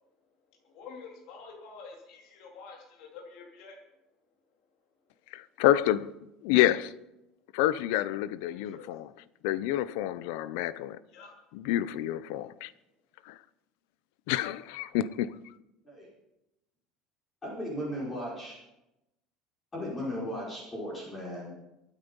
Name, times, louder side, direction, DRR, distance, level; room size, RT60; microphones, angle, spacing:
voice 1, 0.6-3.8 8.5-8.9 11.1-11.3, left 5 dB, 55° left, 3.2 m, -48 dB
voice 2, 5.3-6.1 6.4-6.9 7.5-9.1 9.4-11.0 11.5-12.7 13.3-13.4 14.3-15.4, left 13 dB, 75° left, 0.7 m, -28 dB
voice 3, 17.4-18.6 19.7-21.5, equal, 15° left, 5.0 m, -36 dB
23.5 x 9.2 x 5.4 m
cardioid pair, 170°, 0 cm